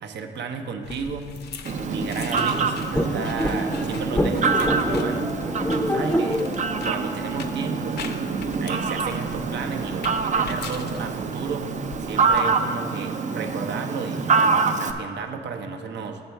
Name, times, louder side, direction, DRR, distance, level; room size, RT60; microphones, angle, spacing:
voice 1, 0.0-1.3 1.8-5.3 5.8-6.4 6.8-8.1 8.6-11.7 12.0-16.2, right 5 dB, 65° right, 5 dB, 0.8 m, -33 dB
sound 1, 0.8-12.4, left 5 dB, 55° left, 0.6 m, -41 dB
Fowl, 1.6-14.9, right 5 dB, 40° right, 0.5 m, -26 dB
sound 2, 2.9-8.1, equal, 5° left, 0.6 m, -27 dB
7.4 x 6.9 x 4.5 m, 2.1 s
cardioid pair, 90°, 20 cm